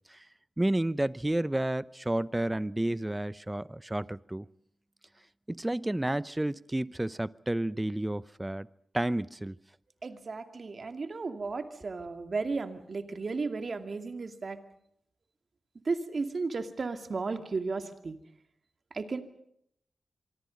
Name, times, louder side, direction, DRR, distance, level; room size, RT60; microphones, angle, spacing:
voice 1, 0.6-4.4 5.5-8.7 8.9-9.6, right 1 dB, 15° right, 0.8 m, -31 dB
voice 2, 10.0-14.6 15.9-18.2 18.9-19.2, right 4 dB, 55° right, 2.4 m, -34 dB
25.5 x 24.0 x 5.3 m
cardioid pair, 50°, 0 cm